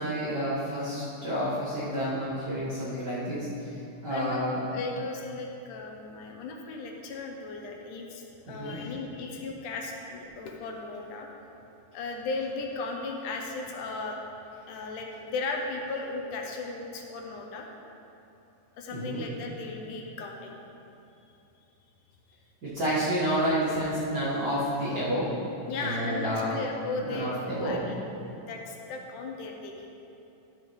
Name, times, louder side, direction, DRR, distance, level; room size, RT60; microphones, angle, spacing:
voice 1, 0.0-3.5 4.0-4.6 8.5-8.9 18.9-19.2 22.6-25.3 25.8-26.5 26.9-27.9, equal, 45° right, -10 dB, 1.5 m, -29 dB
voice 2, 4.1-11.3 11.9-14.2 14.7-17.7 18.8-20.6 25.7-29.9, left 3 dB, 75° left, 1 dB, 2.2 m, -36 dB
12.5 x 6.7 x 3.2 m, 2.9 s
omnidirectional pair, 3.9 m